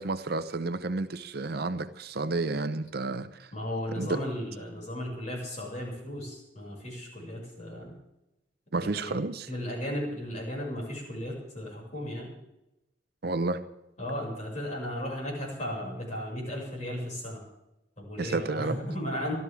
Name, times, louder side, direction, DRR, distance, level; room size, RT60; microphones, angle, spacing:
voice 1, 0.0-3.5 4.0-4.2 8.7-9.5 13.2-13.6 18.2-18.8, right 3 dB, 55° right, 0.7 m, -31 dB
voice 2, 3.5-7.9 8.7-9.1 9.5-12.3 14.0-17.4 18.0-19.3, equal, 40° left, 6.3 m, -35 dB
25.5 x 13.0 x 3.6 m
head